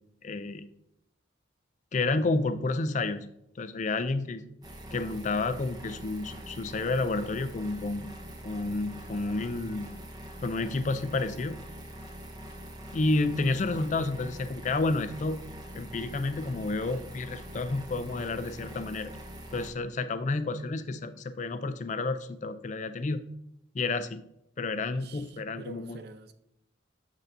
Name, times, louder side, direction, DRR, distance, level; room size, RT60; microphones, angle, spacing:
voice 1, 0.2-0.6 1.9-3.3 3.6-4.4 4.9-8.1 8.4-9.9 10.4-11.6 12.9-15.4 15.7-19.1 19.5-23.2 23.7-24.2 24.6-26.0, left 3 dB, 35° left, 0.4 m, -30 dB
sound 1, 4.6-19.7, right 1 dB, 20° right, 0.8 m, -44 dB
voice 2, 24.9-26.3, right 3 dB, 55° right, 0.5 m, -46 dB
7.2 x 6.6 x 2.6 m
head